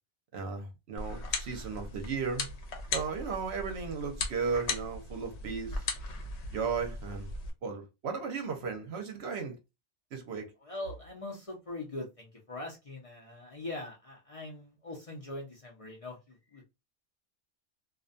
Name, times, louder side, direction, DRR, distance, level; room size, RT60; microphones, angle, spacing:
voice 1, 0.3-2.5 2.9-5.9 6.5-7.3 7.6-9.6 10.1-10.5, right 5 dB, 70° right, 0.9 m, -35 dB
sound 1, 1.0-7.5, left 3 dB, 70° left, 1.0 m, -38 dB
voice 2, 10.6-16.2 16.5-16.6, left 2 dB, 35° left, 0.6 m, -42 dB
2.4 x 2.2 x 2.5 m
omnidirectional pair, 1.2 m